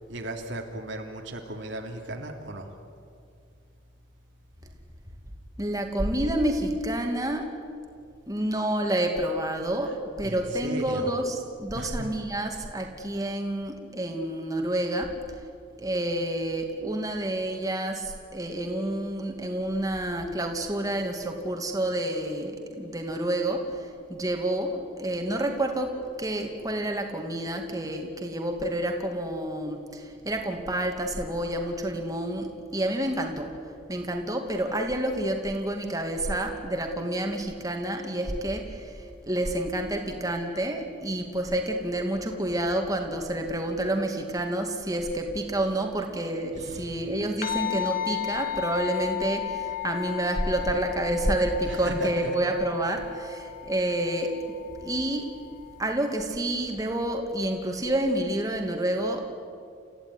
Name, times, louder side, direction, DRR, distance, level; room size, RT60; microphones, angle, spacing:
voice 1, 0.1-2.7 10.2-11.1 11.7-12.1 46.6-47.0 51.6-52.4, right 1 dB, 70° right, 2 dB, 2.8 m, -36 dB
voice 2, 5.6-7.5 8.3-9.9 10.2-15.1 15.8-25.9 26.2-33.5 33.9-54.3 54.8-55.3 55.8-59.2, right 1 dB, 20° right, 3 dB, 2.4 m, -29 dB
sound 1, 47.4-56.1, left 12 dB, 45° left, 1.4 m, -35 dB
30.0 x 15.0 x 9.9 m, 2.3 s
head